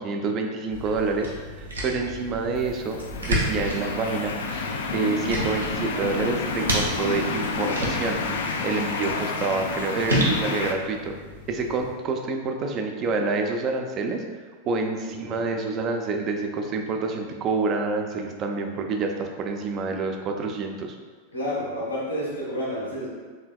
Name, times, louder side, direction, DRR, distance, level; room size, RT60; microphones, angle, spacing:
voice 1, 0.0-8.2 8.6-11.1 11.5-14.2 14.7-21.0, right 4 dB, 35° right, 4 dB, 0.4 m, -27 dB
sound 1, 0.7-11.9, equal, 75° right, 0.8 m, -32 dB
sound 2, 2.7-10.7, left 4 dB, 60° left, 0.3 m, -30 dB
voice 2, 14.6-15.3 21.3-23.1, equal, 90° left, -8 dB, 1.1 m, -30 dB
4.3 x 3.3 x 2.3 m, 1.4 s
figure-of-eight pair, 90°, 0 cm